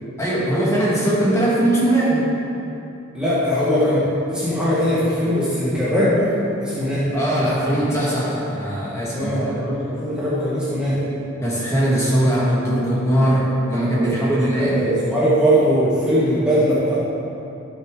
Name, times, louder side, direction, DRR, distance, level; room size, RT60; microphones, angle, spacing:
voice 1, 0.2-2.3 7.1-9.5 11.4-13.4 13.7-14.7, right 1 dB, 15° left, -7 dB, 1.7 m, -20 dB
voice 2, 3.1-7.1 9.1-11.0 13.9-17.0, equal, 5° right, -11 dB, 1.5 m, -20 dB
13.0 x 6.4 x 3.8 m, 2.8 s
head